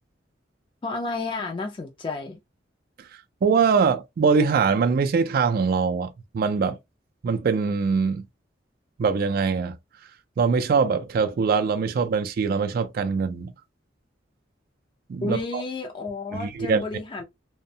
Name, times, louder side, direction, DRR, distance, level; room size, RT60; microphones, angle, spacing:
voice 1, 0.8-2.4 15.2-17.2, left 3 dB, 25° left, 0.4 m, -31 dB
voice 2, 3.4-6.8 7.2-8.3 9.0-9.8 10.4-13.5 15.1-15.6 16.3-16.8, right 5 dB, 50° right, 0.3 m, -23 dB
2.6 x 2.1 x 2.6 m
head